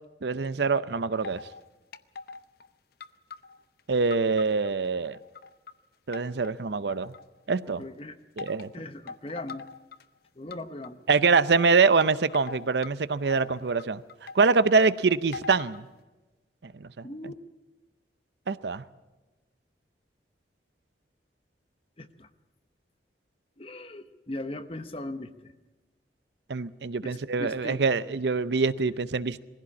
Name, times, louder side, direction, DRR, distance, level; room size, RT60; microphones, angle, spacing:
voice 1, 0.2-1.4 3.9-5.2 6.1-7.1 7.5-7.8 8.4-8.7 11.1-14.0 14.3-15.9 16.6-17.1 18.5-18.8 26.5-29.4, right 4 dB, 70° right, 15 dB, 0.6 m, -24 dB
sound 1, 1.2-1.7 1.9-2.7 3.0-4.7 5.1-5.7 6.1-7.4 8.4-8.7 9.1-10.0 10.5-10.9 11.5-12.9 13.3-14.6 15.3-15.8, left 5 dB, 60° left, 0.7 m, -42 dB
voice 2, 7.7-8.2 8.7-9.7 10.4-11.0 17.0-17.4 22.0-22.3 23.6-25.5 27.0-27.8, left 1 dB, 30° left, 9 dB, 0.9 m, -39 dB
20.5 x 15.5 x 8.5 m, 1.1 s
head